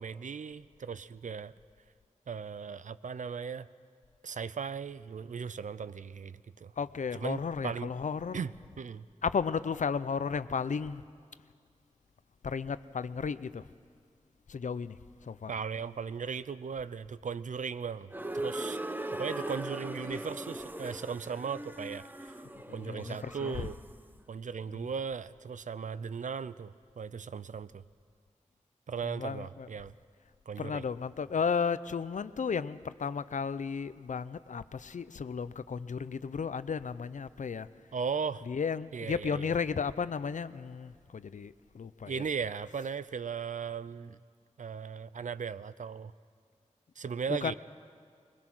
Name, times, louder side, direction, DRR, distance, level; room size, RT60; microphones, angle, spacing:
voice 1, 0.0-1.5 2.3-3.7 4.2-6.7 7.1-7.9 8.3-8.5 8.8-9.0 15.5-18.8 19.1-22.4 22.7-23.8 24.3-27.8 28.9-29.9 30.5-30.9 37.9-38.4 38.9-39.5 42.1-44.2 44.6-46.1 47.0-47.5, right 6 dB, 90° right, 15 dB, 0.5 m, -37 dB
voice 2, 6.8-8.4 9.2-11.0 12.4-13.6 14.5-15.0 15.3-15.5 22.8-23.6 29.0-29.7 30.6-37.7 38.5-42.1 47.3-47.5, left 6 dB, 80° left, 15 dB, 0.5 m, -34 dB
sound 1, 18.1-24.0, right 1 dB, 15° right, 0.8 m, -39 dB
21.5 x 21.0 x 6.1 m, 2.1 s
wide cardioid pair, 65°, 13 cm